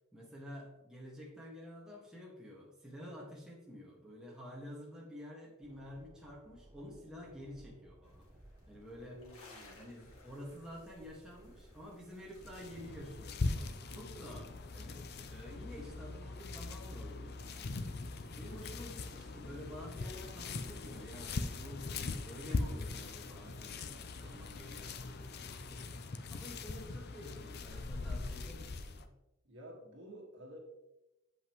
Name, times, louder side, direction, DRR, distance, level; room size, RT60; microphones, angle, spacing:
voice 1, 0.1-8.2 8.7-9.2 9.7-17.9 18.4-21.9 22.2-25.8 26.3-29.1, equal, 5° right, -5 dB, 1.7 m, -50 dB
Train, 5.6-25.2, right 1 dB, 20° right, 0.7 m, -61 dB
sound 1, 8.0-13.0, left 2 dB, 90° left, 1.9 m, -60 dB
voice 2, 9.0-9.8 13.9-14.2 29.4-30.6, equal, 55° right, -1 dB, 1.9 m, -52 dB
sound 2, 12.4-29.1, left 3 dB, 50° left, 0.5 m, -41 dB
8.2 x 7.6 x 3.1 m, 0.93 s
head